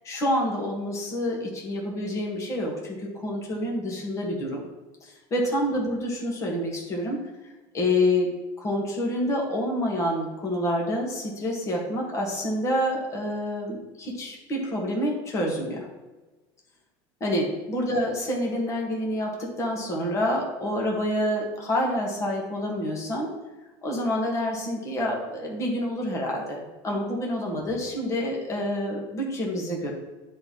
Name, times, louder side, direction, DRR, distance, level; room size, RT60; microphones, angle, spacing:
voice 1, 0.0-4.6 5.0-7.2 7.7-8.3 8.6-15.9 17.2-23.3 23.8-29.9, left 1 dB, 25° left, -1 dB, 1.7 m, -27 dB
10.0 x 4.2 x 3.2 m, 1.2 s
cardioid pair, 155°, 12 cm